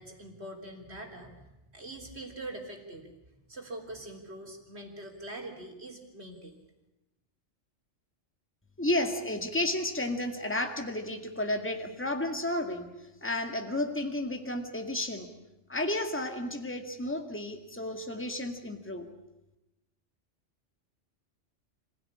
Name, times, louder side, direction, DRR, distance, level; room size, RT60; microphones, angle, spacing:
voice 1, 0.0-1.5 1.7-3.1 3.5-6.6, right 1 dB, 55° right, 2 dB, 3.9 m, -43 dB
voice 2, 8.8-12.9 13.2-15.3 15.7-19.1, left 1 dB, 10° left, 5 dB, 2.1 m, -32 dB
26.5 x 16.0 x 9.9 m, 0.94 s
omnidirectional pair, 1.3 m